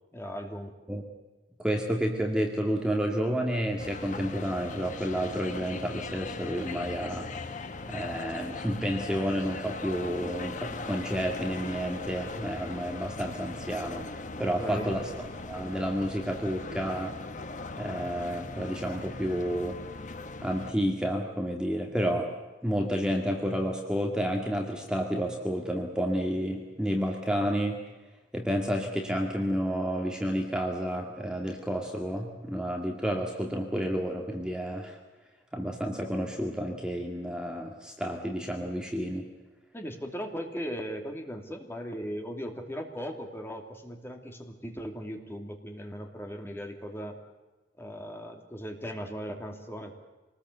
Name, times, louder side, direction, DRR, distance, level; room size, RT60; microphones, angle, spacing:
voice 1, 0.1-0.7 14.4-14.9 39.7-47.2 47.8-50.0, equal, 15° left, 3 dB, 2.9 m, -38 dB
voice 2, 1.6-7.3 7.9-14.1 14.4-15.1 15.4-17.1 17.8-19.8 20.4-22.3 22.6-27.8 28.3-35.0 35.5-39.3, equal, 5° right, 1 dB, 2.2 m, -30 dB
sound 1, 3.8-20.7, left 3 dB, 45° left, 1.3 m, -39 dB
25.5 x 20.0 x 8.1 m, 1.2 s
head